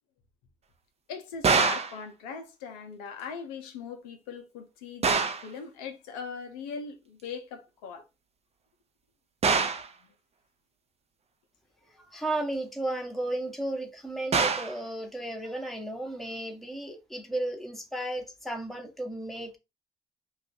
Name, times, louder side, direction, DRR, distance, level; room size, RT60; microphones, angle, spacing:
voice 1, 1.1-8.0, left 6 dB, 85° left, 0.6 m, -40 dB
sound 1, 1.4-2.0 5.0-5.5 9.4-9.9 14.3-14.8, right 5 dB, 35° right, 0.6 m, -24 dB
voice 2, 12.0-19.6, right 1 dB, ahead, 0.9 m, -34 dB
2.5 x 2.3 x 3.9 m
hypercardioid pair, 50°, 18 cm